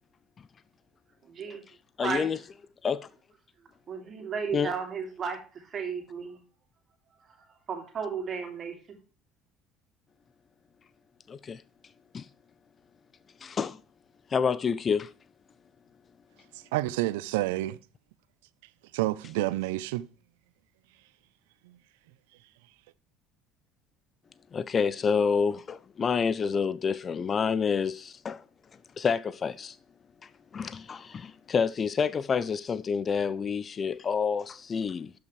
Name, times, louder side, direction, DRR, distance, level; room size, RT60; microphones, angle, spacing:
voice 1, 1.3-1.6 2.0-2.3 3.9-5.4 5.7-6.4 7.7-8.7, right 6 dB, 45° right, 2.4 m, -33 dB
voice 2, 2.0-2.5 2.8-3.1 4.5-4.7 11.3-11.6 12.1-12.3 13.4-13.8 14.3-15.1 24.5-28.4 29.0-29.8 30.5-35.1, left 6 dB, 35° left, 0.4 m, -28 dB
voice 3, 16.7-17.8 18.9-20.1, right 17 dB, 85° right, 0.4 m, -28 dB
12.0 x 5.8 x 3.2 m
supercardioid pair, 80°, 0 cm